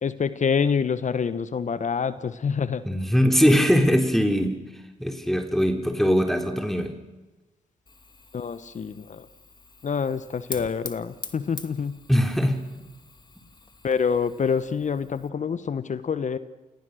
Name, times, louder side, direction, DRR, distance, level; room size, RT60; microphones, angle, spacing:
voice 1, 0.0-2.8 8.3-9.3 9.8-12.0 13.8-16.4, left 6 dB, 50° left, 14 dB, 1.2 m, -26 dB
voice 2, 2.8-4.6 5.0-7.0 12.1-12.6, equal, ahead, 4 dB, 3.4 m, -21 dB
Fire, 7.9-15.3, left 3 dB, 30° left, 2.3 m, -44 dB
28.0 x 18.5 x 6.5 m, 1.1 s
supercardioid pair, 50°, 16 cm